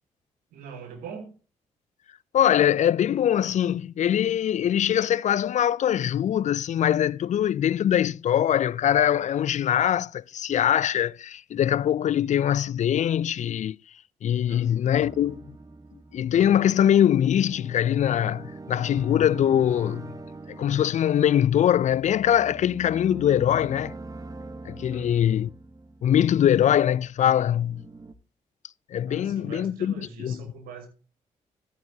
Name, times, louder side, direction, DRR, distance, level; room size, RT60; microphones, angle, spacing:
voice 1, 0.5-1.3 14.5-14.9 24.9-25.4 29.1-30.9, right 5 dB, 85° right, 2.3 m, -42 dB
voice 2, 2.3-13.8 14.2-15.4 16.1-20.1 20.5-23.9 24.7-25.5 26.0-27.8 28.9-29.9 30.2-30.4, left 10 dB, 55° left, 0.4 m, -22 dB
sound 1, 14.9-26.6 27.1-28.1, right 2 dB, 25° right, 1.0 m, -43 dB
13.0 x 9.2 x 2.7 m
supercardioid pair, 50°, 15 cm